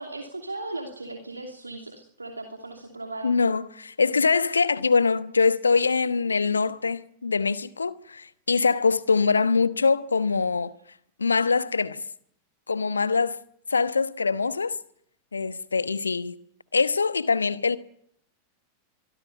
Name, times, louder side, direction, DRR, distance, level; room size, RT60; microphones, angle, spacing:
voice 1, 0.0-3.3, right 2 dB, 80° right, 2.8 m, -37 dB
voice 2, 3.2-10.7 11.2-12.0 12.7-13.4 13.7-14.7 15.3-16.4 16.7-17.8, left 4 dB, 75° left, 1.0 m, -23 dB
24.0 x 23.5 x 5.6 m
figure-of-eight pair, 90°, 0 cm